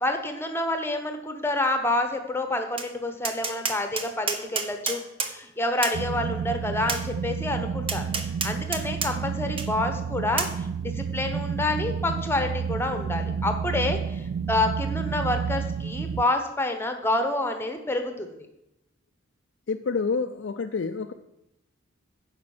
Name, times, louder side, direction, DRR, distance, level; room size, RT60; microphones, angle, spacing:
voice 1, 0.0-5.0 5.3-8.1 8.4-14.2 14.5-18.4, left 2 dB, 10° left, 6 dB, 1.1 m, -28 dB
Tap, 2.8-2.9 3.2-5.3 5.8-6.0 6.9-7.0 7.9-9.1 9.6-9.7 10.4-10.5, right 4 dB, 30° right, 0.9 m, -29 dB
sound 1, 5.9-16.2, right 6 dB, 85° right, 0.3 m, -30 dB
voice 2, 19.7-21.1, left 4 dB, 65° left, 6 dB, 0.4 m, -28 dB
9.4 x 5.2 x 7.2 m, 0.85 s
head